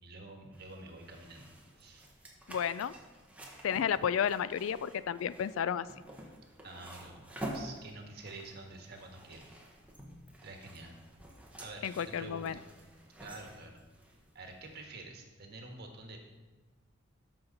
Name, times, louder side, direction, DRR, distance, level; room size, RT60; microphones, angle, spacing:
voice 1, 0.0-2.1 6.6-7.2 7.5-9.5 10.4-11.0 11.6-12.6 13.2-13.8 14.3-16.2, right 2 dB, 55° right, 3 dB, 1.4 m, -48 dB
sound 1, 0.5-14.8, right 1 dB, 5° right, 1.2 m, -49 dB
voice 2, 2.5-2.9 3.6-5.9 11.8-12.6, left 8 dB, 90° left, 16 dB, 0.4 m, -32 dB
12.5 x 5.9 x 3.9 m, 1.2 s
head